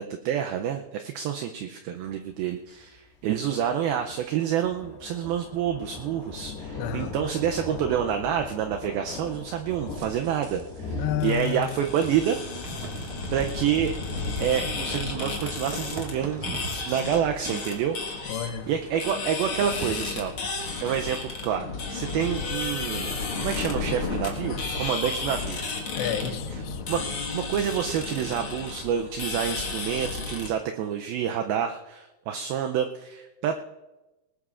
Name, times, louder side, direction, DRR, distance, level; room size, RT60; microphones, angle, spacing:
voice 1, 0.0-12.4 13.3-13.9 14.4-16.5 16.9-18.3 18.7-20.3 20.8-25.6 26.9-33.5, right 9 dB, 80° right, 5 dB, 2.2 m, -28 dB
Thunder, 1.9-18.8, left 3 dB, 70° left, 3.8 m, -41 dB
voice 2, 6.8-7.1 11.0-11.8 18.3-18.7 26.0-26.8, left 10 dB, 90° left, 9 dB, 3.0 m, -30 dB
sound 1, 9.3-10.8 11.1-11.3 12.0-21.3, right 3 dB, 55° right, 2.8 m, -42 dB
sound 2, 11.2-30.5, left 4 dB, 50° left, 1.6 m, -33 dB
19.5 x 19.5 x 2.5 m, 1.1 s
omnidirectional pair, 4.8 m